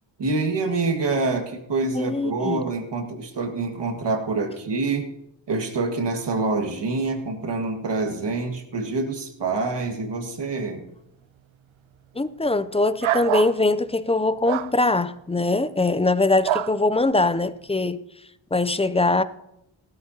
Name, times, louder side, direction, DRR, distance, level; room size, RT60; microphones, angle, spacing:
voice 1, 0.2-5.1 5.5-10.8, right 3 dB, 60° right, 1.9 m, -26 dB
voice 2, 1.9-2.7 12.1-18.0 18.5-19.2, left 2 dB, 15° left, 0.4 m, -22 dB
sound 1, 13.0-13.6 14.5-14.7 16.4-16.7, right 12 dB, 80° right, 0.6 m, -24 dB
16.5 x 13.0 x 2.8 m
wide cardioid pair, 110°, 46 cm